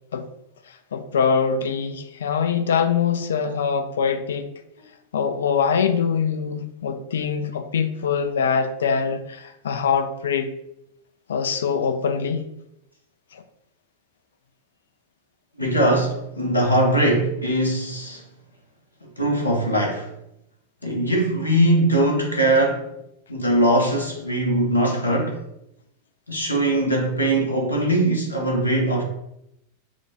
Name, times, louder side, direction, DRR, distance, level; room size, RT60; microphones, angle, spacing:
voice 1, 0.9-4.5 5.1-10.5 11.3-12.5 13.3-13.4, left 6 dB, 65° left, 0.4 m, -23 dB
voice 2, 15.6-18.2 19.2-20.1 20.8-22.9 23.3-25.4 26.3-29.0, right 1 dB, 80° left, 0.9 m, -21 dB
5.7 x 2.2 x 2.7 m
figure-of-eight pair, 90°, 0 cm